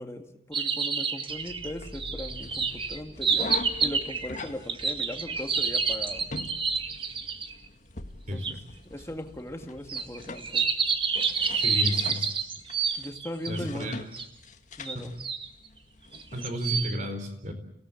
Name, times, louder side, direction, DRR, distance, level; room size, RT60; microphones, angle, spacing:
voice 1, 0.0-6.3 8.3-8.6 8.8-10.7 13.0-14.0 14.8-15.2, equal, 15° left, 5 dB, 2.1 m, -39 dB
sound 1, 0.5-7.5 8.4-8.5 9.9-13.6 14.1-14.3 14.9-15.5 16.1-17.0, right 5 dB, 30° right, 1.5 m, -28 dB
sound 2, 1.3-16.5, left 2 dB, 45° left, 1.7 m, -43 dB
voice 2, 11.6-12.5 13.5-14.0 14.9-15.1 16.3-17.5, equal, 45° right, 6 dB, 4.5 m, -32 dB
29.5 x 17.5 x 8.6 m, 0.75 s
head